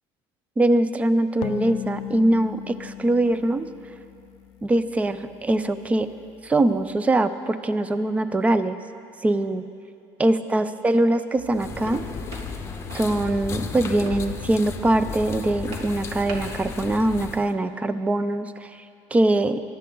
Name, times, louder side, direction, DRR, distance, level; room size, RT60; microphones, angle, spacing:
voice 1, 0.6-3.7 4.6-6.1 6.4-8.8 9.2-9.6 10.2-12.0 12.9-18.8 19.1-19.6, right 1 dB, 15° right, 12 dB, 0.5 m, -22 dB
sound 1, 1.4-4.9, left 12 dB, 70° left, 0.6 m, -36 dB
sound 2, 11.3-16.6, right 3 dB, 65° right, 2.5 m, -42 dB
sound 3, 11.5-17.5, left 5 dB, 25° left, 0.8 m, -34 dB
22.5 x 12.0 x 3.9 m, 2.6 s
cardioid pair, 145°, 10 cm